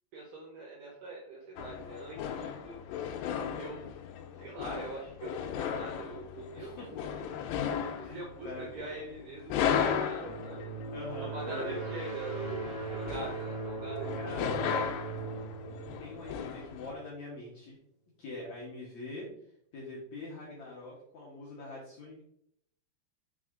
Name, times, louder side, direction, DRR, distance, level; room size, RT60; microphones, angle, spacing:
voice 1, 0.1-2.8 3.6-3.9 4.4-7.2 8.0-10.7 11.2-14.3 14.7-15.1, right 3 dB, 75° right, -1 dB, 1.9 m, -43 dB
sound 1, 1.6-16.9, left 7 dB, 85° left, 2.8 m, -36 dB
voice 2, 6.6-7.1 8.0-8.7 10.9-11.9 14.1-14.5 16.0-17.8 18.2-19.3 19.7-22.2, left 2 dB, 65° left, -5 dB, 1.8 m, -43 dB
sound 2, 10.2-16.9, right 3 dB, 10° left, 1.3 m, -39 dB
6.3 x 4.0 x 3.7 m, 0.72 s
omnidirectional pair, 4.9 m